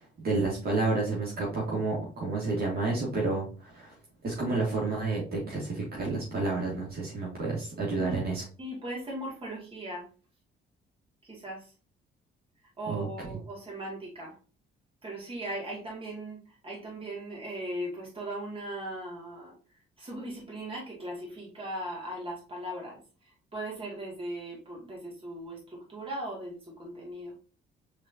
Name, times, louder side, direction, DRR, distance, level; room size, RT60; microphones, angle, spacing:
voice 1, 0.0-3.9 4.2-8.4 12.9-13.1, right 3 dB, 50° right, -4 dB, 2.3 m, -30 dB
voice 2, 8.6-10.1 11.2-11.7 12.8-14.3 15.0-19.5 20.0-27.3, right 1 dB, 25° right, -3 dB, 2.7 m, -38 dB
4.9 x 3.8 x 2.9 m, 0.35 s
cardioid pair, 90°, 20 cm